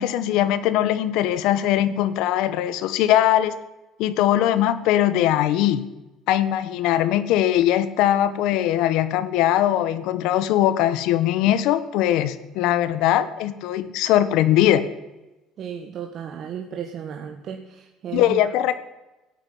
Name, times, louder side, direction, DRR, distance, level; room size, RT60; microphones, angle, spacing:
voice 1, 0.0-3.6 4.0-5.8 6.3-14.9 18.1-18.8, left 12 dB, 75° left, 14 dB, 1.2 m, -21 dB
voice 2, 15.6-18.4, right 8 dB, 50° right, 3 dB, 1.7 m, -34 dB
17.0 x 9.0 x 9.3 m, 1.1 s
cardioid pair, 105°, 0 cm